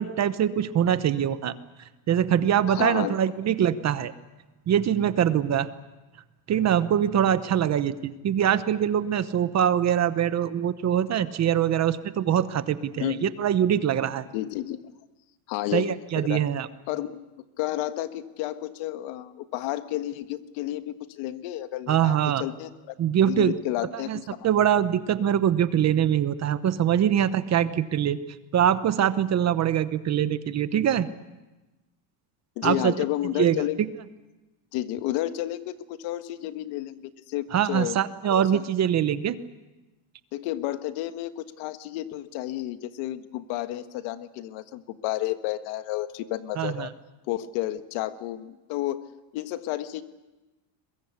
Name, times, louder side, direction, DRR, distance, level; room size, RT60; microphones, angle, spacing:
voice 1, 0.0-1.5 2.1-4.1 4.7-5.7 6.5-14.2 15.7-16.7 21.9-22.4 23.0-23.6 23.9-24.2 24.4-28.2 28.5-31.1 32.6-32.9 33.4-33.6 37.5-39.4 46.6-46.9, right 9 dB, 30° right, 13 dB, 0.9 m, -23 dB
voice 2, 2.7-3.2 13.0-13.3 14.3-14.8 15.5-16.4 16.9-17.2 17.6-22.7 23.2-24.5 32.6-33.8 34.7-38.0 38.3-38.6 40.3-46.9 47.3-49.0 49.3-50.0, left 14 dB, 70° left, 10 dB, 1.6 m, -31 dB
22.5 x 22.0 x 8.4 m, 1.1 s
cardioid pair, 140°, 50 cm